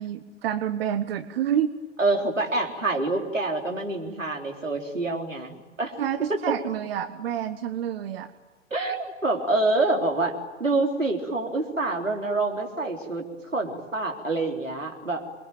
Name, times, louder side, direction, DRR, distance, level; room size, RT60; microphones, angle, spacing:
voice 1, 0.0-1.7 6.0-8.3, right 9 dB, 50° right, 11 dB, 1.3 m, -28 dB
voice 2, 2.0-5.9 6.3-6.4 8.7-13.2 13.5-15.3, right 2 dB, 85° right, 1 dB, 4.0 m, -26 dB
27.5 x 23.0 x 9.2 m, 1.2 s
figure-of-eight pair, 105°, 37 cm